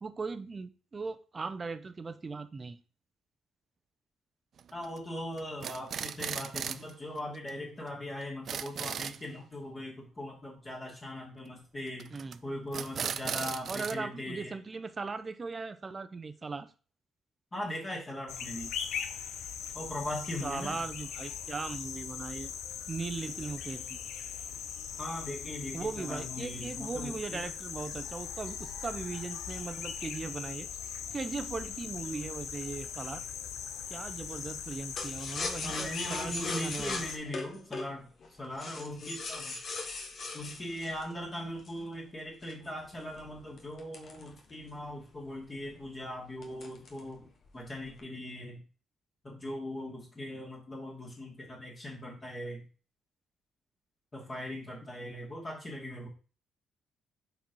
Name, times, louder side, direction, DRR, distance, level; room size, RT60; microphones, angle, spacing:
voice 1, 0.0-2.8 12.1-12.4 13.7-16.7 20.4-22.5 22.9-24.0 25.7-30.7 31.1-33.2 33.9-37.0, right 4 dB, 30° right, 0.7 m, -38 dB
sound 1, 4.6-5.0 5.4-6.9 7.2-7.3 7.5-7.6 7.9-8.0 8.2-9.2 12.0-12.4 12.7-13.9, right 8 dB, 55° right, 0.4 m, -36 dB
voice 2, 4.7-12.1 12.4-14.6 17.5-18.8 19.7-20.8 25.0-27.5 35.6-39.6 40.3-47.3 47.5-48.6 49.2-52.6 54.1-56.1, left 1 dB, 25° left, 2.3 m, -40 dB
sound 2, 18.3-37.2, left 8 dB, 80° left, 0.6 m, -40 dB
sound 3, 35.0-41.9 42.4-44.9 45.2-45.3 45.6-46.0 46.4-47.1 47.4-48.0, left 3 dB, 55° left, 1.4 m, -39 dB
5.0 x 4.5 x 5.4 m
cardioid pair, 90°, 0 cm